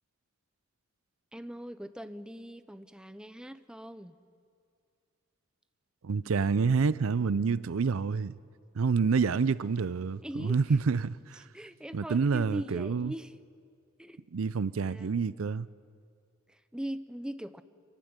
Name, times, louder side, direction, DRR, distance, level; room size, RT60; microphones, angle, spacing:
voice 1, 1.3-4.2 9.2-9.5 10.2-10.6 11.4-13.4 14.0-14.2 14.9-15.2 16.5-17.6, equal, 5° right, 0.6 m, -41 dB
voice 2, 6.0-8.4 8.7-11.4 11.9-13.1 14.3-15.7, right 5 dB, 80° right, 0.5 m, -28 dB
27.0 x 15.5 x 9.6 m
head